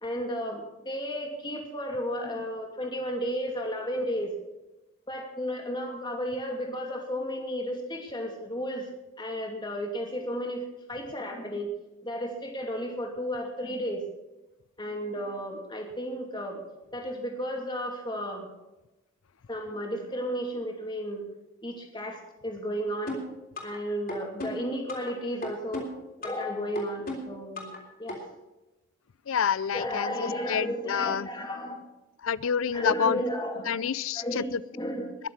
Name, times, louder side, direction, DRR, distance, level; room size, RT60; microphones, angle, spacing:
voice 1, 0.0-4.3 5.1-8.9 9.2-11.7 12.0-14.0 14.8-16.6 16.9-18.5 19.5-21.3 21.6-23.1 23.6-25.9 26.2-27.7 28.0-28.2 29.7-31.8 32.7-33.8 34.1-35.2, equal, 20° left, 1 dB, 2.6 m, -33 dB
sound 1, 23.1-23.8 24.1-25.1 25.4-26.5 26.8-27.8 28.1-28.2, left 1 dB, 45° left, 3.5 m, -36 dB
voice 2, 29.3-31.3 32.2-33.2 33.7-34.6, left 7 dB, 80° left, 20 dB, 0.5 m, -28 dB
21.0 x 7.4 x 6.5 m, 1.0 s
head